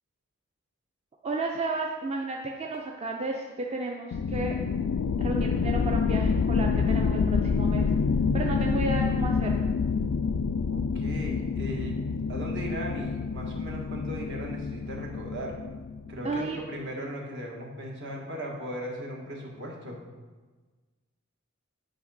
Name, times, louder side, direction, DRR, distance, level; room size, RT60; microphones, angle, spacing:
voice 1, 1.2-4.6 5.2-7.9 8.3-9.7 16.2-16.6, right 3 dB, 30° right, 1 dB, 0.5 m, -32 dB
sound 1, 4.1-16.4, left 5 dB, 70° left, 0.3 m, -27 dB
voice 2, 10.7-15.6 16.1-20.0, equal, 60° right, 0 dB, 1.5 m, -37 dB
8.7 x 5.1 x 4.1 m, 1.3 s
head